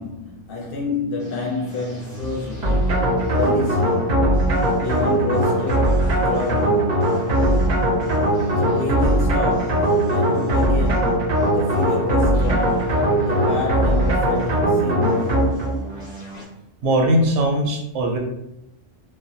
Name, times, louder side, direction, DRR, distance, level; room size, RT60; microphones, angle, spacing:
voice 1, 0.0-3.0 3.3-4.1 4.8-6.9 8.4-12.8 13.2-15.5, left 3 dB, 60° left, 0.7 m, -29 dB
sound 1, 1.2-16.5, left 1 dB, 20° left, 0.6 m, -36 dB
sound 2, 2.6-15.8, right 1 dB, 55° right, 0.5 m, -20 dB
voice 2, 16.8-18.2, right 1 dB, 80° right, 0.9 m, -19 dB
2.4 x 2.0 x 2.6 m
omnidirectional pair, 1.2 m